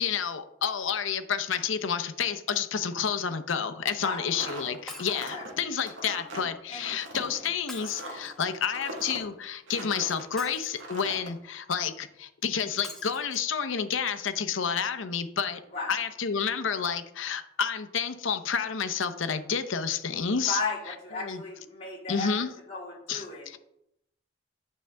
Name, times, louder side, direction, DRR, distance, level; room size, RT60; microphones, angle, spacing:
voice 1, 0.0-15.6 15.9-20.6 20.9-21.4 22.1-22.5 23.1-23.6, left 7 dB, 85° left, 10 dB, 0.7 m, -30 dB
sound 1, 4.2-10.3 10.7-11.3, right 1 dB, 85° right, 1.6 m, -41 dB
Shatter, 4.9-5.3 7.7-8.6 10.4-11.1 12.8-13.4 14.1-14.2 14.4-14.5, left 2 dB, 5° left, 0.8 m, -45 dB
voice 2, 20.4-22.3 22.7-23.5, left 3 dB, 35° left, -6 dB, 3.6 m, -35 dB
9.1 x 6.6 x 3.4 m, 0.79 s
head